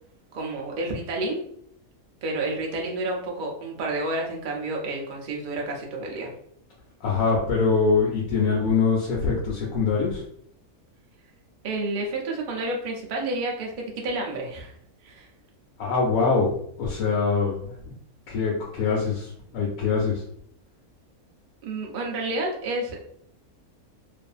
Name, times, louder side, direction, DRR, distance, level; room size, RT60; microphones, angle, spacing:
voice 1, 0.3-1.4 2.2-6.3 11.6-13.7 14.0-14.7 15.0-15.3 21.6-23.0, right 2 dB, 65° right, 0 dB, 0.4 m, -30 dB
voice 2, 7.0-10.2 15.8-16.5 16.8-17.9 18.3-20.2, left 4 dB, 75° left, -4 dB, 1.0 m, -23 dB
2.5 x 2.5 x 2.3 m, 0.67 s
omnidirectional pair, 1.6 m